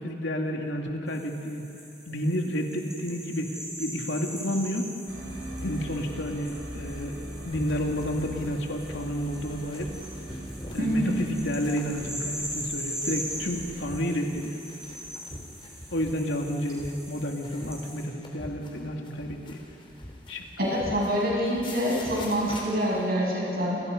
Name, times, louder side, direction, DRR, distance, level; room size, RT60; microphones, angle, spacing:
voice 1, 0.0-1.7 2.1-3.5 3.8-4.9 5.6-7.2 7.4-9.9 10.7-14.6 15.9-19.6 20.3-20.4, equal, 75° left, 1 dB, 2.7 m, -30 dB
sound 1, 1.1-18.0, equal, 5° right, 7.0 m, -41 dB
sound 2, 5.1-13.9, right 1 dB, 70° right, 4.7 m, -41 dB
sound 3, 7.5-23.0, left 1 dB, 30° left, 3.8 m, -44 dB
voice 2, 10.8-11.2 20.6-23.8, equal, 55° right, -4 dB, 7.7 m, -26 dB
29.0 x 26.5 x 5.4 m, 2.8 s
head